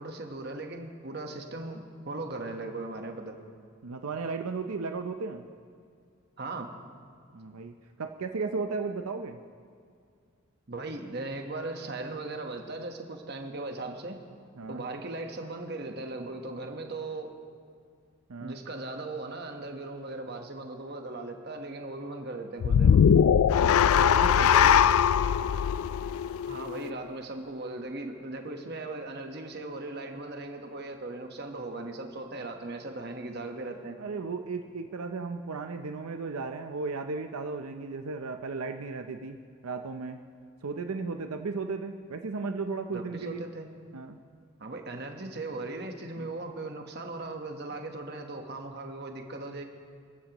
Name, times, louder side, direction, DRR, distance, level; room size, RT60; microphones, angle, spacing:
voice 1, 0.0-3.4 6.4-6.7 10.7-14.2 14.7-17.3 18.4-23.0 26.5-34.0 42.9-43.7 44.6-49.6, right 2 dB, 50° right, 4 dB, 1.2 m, -38 dB
voice 2, 3.8-5.4 7.3-9.4 14.6-14.8 18.3-18.6 23.6-25.0 34.0-39.4 39.6-40.2 40.6-43.4 43.9-44.2 46.2-46.3, right 4 dB, 85° right, 6 dB, 0.6 m, -35 dB
sound 1, 22.6-27.0, left 8 dB, 80° left, 0.3 m, -21 dB
24.0 x 15.0 x 3.0 m, 2.3 s
head